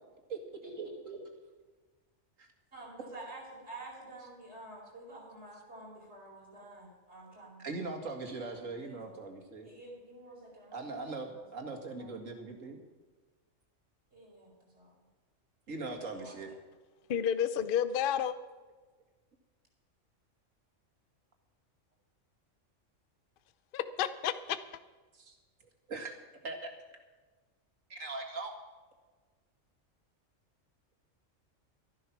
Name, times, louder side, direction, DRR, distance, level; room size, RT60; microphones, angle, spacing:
voice 1, 0.8-1.2 2.4-2.5 4.2-4.3 7.6-9.7 10.7-12.8 15.7-16.5 25.1-25.4 25.9-26.1 26.4-26.7 27.9-28.5, right 3 dB, 90° right, 2.3 m, -40 dB
voice 2, 2.7-7.6 8.5-9.2 9.6-11.2 11.6-11.7 12.0-12.1 14.1-14.5 16.2-16.5, right 2 dB, 55° right, 5.1 m, -49 dB
voice 3, 17.1-18.3 23.7-24.6, left 9 dB, 50° left, 0.8 m, -30 dB
13.0 x 11.5 x 6.0 m
omnidirectional pair, 1.3 m